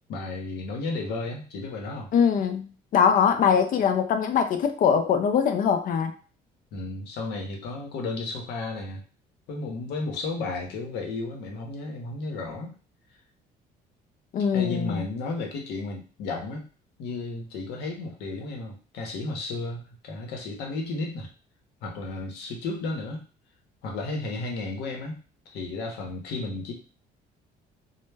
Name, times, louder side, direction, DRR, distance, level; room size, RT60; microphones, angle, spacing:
voice 1, 0.1-2.1 6.7-9.0 9.5-12.7 14.5-16.7 17.0-21.3 21.8-23.2 23.8-25.2 25.5-26.7, left 3 dB, 80° left, 2 dB, 0.8 m, -33 dB
voice 2, 2.1-6.1 14.3-15.0, left 7 dB, 55° left, 7 dB, 0.4 m, -22 dB
2.1 x 2.0 x 3.3 m, 0.37 s
cardioid pair, 110°, 17 cm